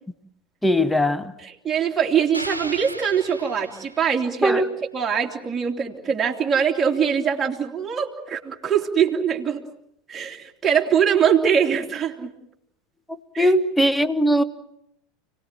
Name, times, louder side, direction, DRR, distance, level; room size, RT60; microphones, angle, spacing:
voice 1, 0.6-1.3 4.4-4.7 13.4-14.4, equal, 5° left, 14 dB, 1.3 m, -19 dB
voice 2, 1.4-4.6 4.9-9.6 10.1-12.3 13.3-13.5, right 7 dB, 20° right, -1 dB, 2.9 m, -22 dB
sound 1, 2.3-4.5, right 1 dB, 90° right, 1.3 m, -36 dB
30.0 x 19.0 x 7.6 m, 0.76 s
figure-of-eight pair, 80°, 0 cm